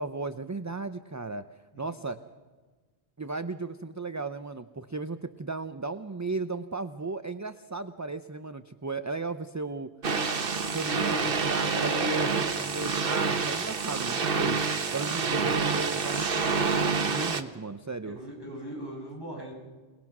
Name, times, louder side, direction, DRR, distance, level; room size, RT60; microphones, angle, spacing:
voice 1, 0.0-1.4 1.8-2.2 3.2-9.9 10.7-14.6 14.9-18.2, right 3 dB, 20° right, 10 dB, 0.5 m, -35 dB
sound 1, 10.0-17.4, right 4 dB, 60° right, 1.3 m, -27 dB
voice 2, 15.0-15.5 18.0-19.5, right 1 dB, 20° left, -3 dB, 7.7 m, -40 dB
28.5 x 20.0 x 6.1 m, 1.4 s
omnidirectional pair, 1.1 m